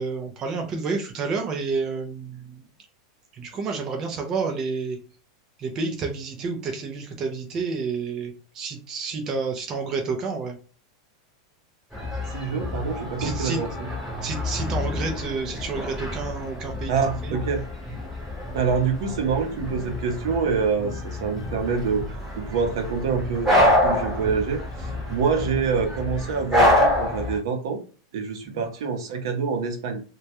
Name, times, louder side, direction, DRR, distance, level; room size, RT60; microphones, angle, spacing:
voice 1, 0.0-2.6 3.3-5.0 5.6-10.6 13.2-13.6 14.2-16.9 17.2-17.4 28.5-28.6, right 4 dB, 20° right, 2 dB, 0.3 m, -30 dB
sound 1, 11.9-27.4, left 1 dB, ahead, 0.8 m, -27 dB
voice 2, 12.3-13.7 16.9-17.6 18.5-27.8 28.1-30.0, right 5 dB, 60° right, 5 dB, 0.6 m, -26 dB
2.2 x 2.0 x 2.8 m, 0.37 s
supercardioid pair, 180°, 3 cm